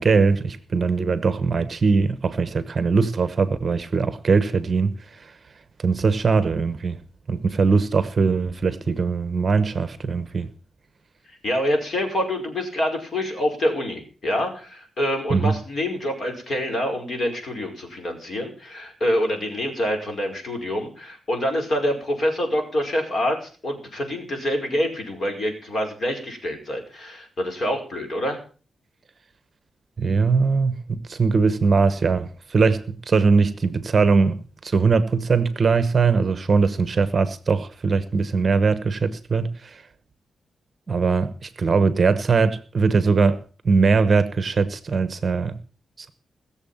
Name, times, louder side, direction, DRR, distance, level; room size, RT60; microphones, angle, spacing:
voice 1, 0.0-5.3 5.8-7.0 7.3-10.5 15.3-15.5 30.0-39.8 40.9-45.6, right 4 dB, 35° right, 1.1 m, -21 dB
voice 2, 11.4-28.4, left 1 dB, 45° left, 5.2 m, -26 dB
20.0 x 7.3 x 7.2 m
wide cardioid pair, 150°, 0 cm